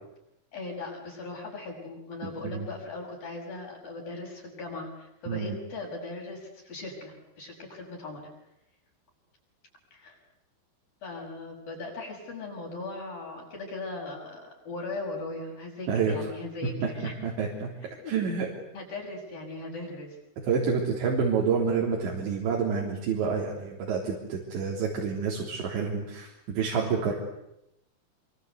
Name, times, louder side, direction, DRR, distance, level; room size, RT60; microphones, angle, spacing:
voice 1, 0.5-8.3 9.9-10.2 11.0-17.5 17.8-18.1 18.7-20.2 26.8-27.1, left 2 dB, 45° left, -1 dB, 8.2 m, -39 dB
voice 2, 17.2-17.7 18.1-18.5 20.5-27.1, right 6 dB, 65° right, -1 dB, 5.8 m, -28 dB
28.5 x 25.0 x 8.2 m, 0.83 s
omnidirectional pair, 5.6 m